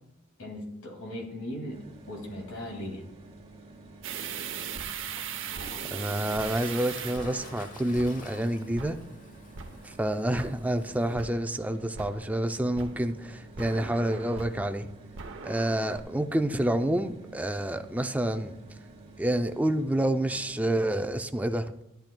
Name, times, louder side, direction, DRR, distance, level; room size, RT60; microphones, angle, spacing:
voice 1, 0.4-3.0, left 1 dB, 80° left, 2.3 m, -38 dB
sound 1, 1.7-21.0, right 2 dB, 25° right, 1.5 m, -50 dB
sound 2, 4.0-8.5 8.7-9.2 9.5-10.0 10.3-10.9 11.1-11.7 11.9-12.3 12.7-14.8 15.1-16.0, right 7 dB, 60° right, 0.8 m, -39 dB
Toilet flush, 5.0-11.2, left 3 dB, 40° left, 1.0 m, -50 dB
voice 2, 5.9-9.0 9.8-14.9 15.4-18.6 19.2-21.7, right 1 dB, 5° right, 0.4 m, -28 dB
13.0 x 10.5 x 2.2 m
head